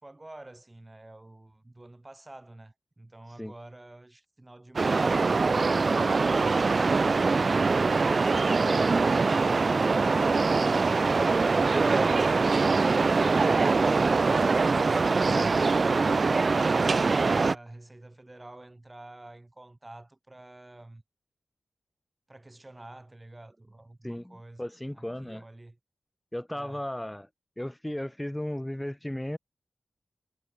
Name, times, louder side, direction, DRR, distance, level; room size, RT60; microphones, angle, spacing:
voice 1, 0.0-7.4 17.3-21.0 22.3-25.8 26.5-26.9, right 2 dB, 20° right, 4.1 m, -49 dB
sound 1, 4.8-17.6, right 4 dB, 50° right, 0.4 m, -23 dB
voice 2, 8.6-9.0 15.3-15.4 24.0-25.4 26.3-27.3 27.6-29.4, left 1 dB, 10° left, 0.7 m, -35 dB
wide cardioid pair, 80°, 0 cm